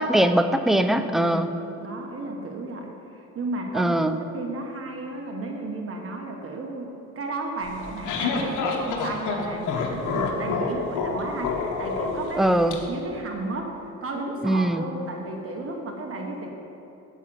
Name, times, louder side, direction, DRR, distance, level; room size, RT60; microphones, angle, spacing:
voice 1, 0.0-1.5 3.7-4.2 12.4-12.8 14.4-14.8, right 1 dB, ahead, 9 dB, 0.4 m, -21 dB
voice 2, 1.2-1.5 1.8-12.5 12.9-13.7 14.0-16.5, right 2 dB, 50° right, 2 dB, 1.3 m, -33 dB
sound 1, 7.7-12.7, left 4 dB, 90° left, 1.1 m, -28 dB
8.3 x 6.1 x 7.5 m, 2.9 s
cardioid pair, 90°, 30 cm